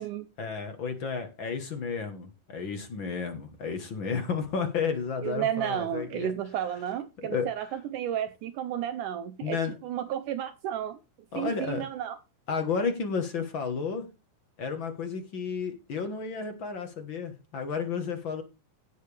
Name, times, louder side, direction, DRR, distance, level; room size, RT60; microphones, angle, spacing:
voice 1, 0.4-6.3 7.2-7.5 9.4-9.8 11.3-11.9 12.5-14.1 14.6-18.4, left 5 dB, 60° left, 1.3 m, -32 dB
voice 2, 5.2-11.0 11.4-12.2, right 10 dB, 75° right, 1.9 m, -32 dB
17.0 x 6.5 x 3.3 m
omnidirectional pair, 4.2 m